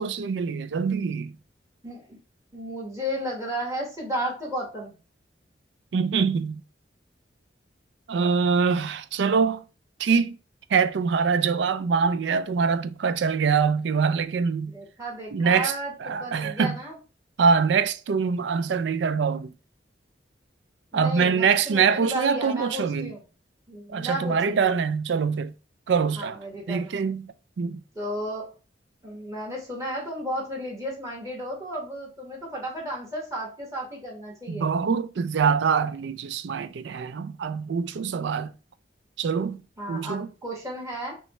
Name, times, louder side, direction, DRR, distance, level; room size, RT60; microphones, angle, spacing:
voice 1, 0.0-1.4 5.9-6.6 8.1-9.6 10.0-10.4 10.7-14.7 15.3-15.7 16.0-16.8 17.4-19.5 20.9-23.1 23.9-25.5 25.9-26.4 26.7-27.8 34.5-38.5 39.2-39.6 39.9-40.3, right 5 dB, 70° right, 0.4 m, -24 dB
voice 2, 1.8-2.2 2.5-5.0 14.7-17.0 20.9-23.2 23.7-24.7 26.2-27.0 27.9-28.5 29.0-34.7 39.8-41.2, equal, 20° right, 1.4 m, -33 dB
5.4 x 2.3 x 3.1 m
head